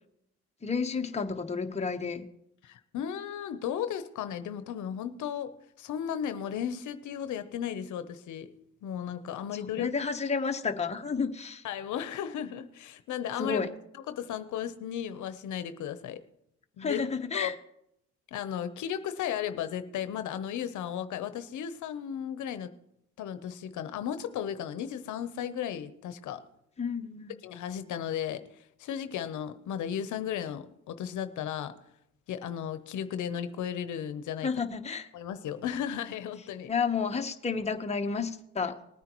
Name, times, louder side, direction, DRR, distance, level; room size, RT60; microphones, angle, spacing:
voice 1, 0.6-2.3 9.8-11.7 13.4-13.7 16.8-17.6 26.8-27.3 34.4-35.1 36.7-38.8, left 5 dB, 20° left, 4 dB, 1.0 m, -31 dB
voice 2, 2.6-8.5 8.8-9.9 11.6-13.7 14.1-16.2 16.8-17.0 17.3-17.5 18.3-22.7 23.2-26.4 27.4-31.8 32.3-34.5 35.1-36.7, left 9 dB, 75° left, 11 dB, 0.8 m, -35 dB
19.5 x 9.3 x 3.0 m, 0.78 s
cardioid pair, 90°, 30 cm